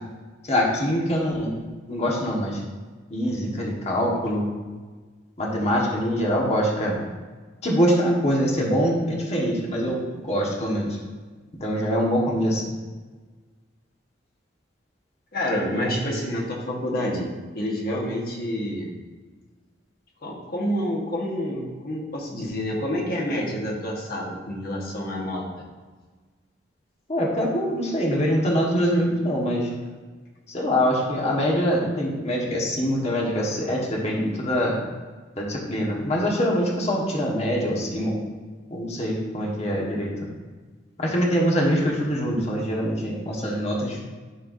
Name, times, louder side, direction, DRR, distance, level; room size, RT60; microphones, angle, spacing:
voice 1, 0.4-1.6 1.9-2.6 3.1-4.5 5.4-7.0 7.6-10.0 10.2-11.0 11.6-12.6 15.7-16.1 27.1-29.7 30.5-34.8 35.4-38.2 38.7-40.1 41.0-44.0, equal, 35° left, -2 dB, 1.3 m, -24 dB
voice 2, 15.3-18.9 20.2-25.4, equal, 55° left, -1 dB, 1.3 m, -28 dB
11.5 x 4.4 x 2.6 m, 1.4 s
head